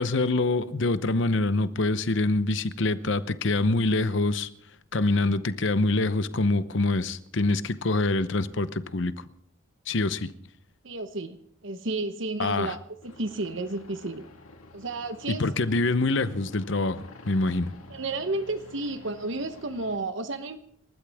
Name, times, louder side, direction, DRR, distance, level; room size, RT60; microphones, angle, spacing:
voice 1, 0.0-4.5 4.9-9.1 9.9-10.3 12.4-12.7 15.3-17.7, left 2 dB, 60° left, 0.8 m, -25 dB
voice 2, 10.8-11.4 11.6-12.8 13.0-14.3 14.7-15.4 17.9-20.6, right 2 dB, 60° right, 1.0 m, -32 dB
sound 1, 13.0-20.0, left 2 dB, 85° left, 2.1 m, -49 dB
28.0 x 13.5 x 3.6 m
head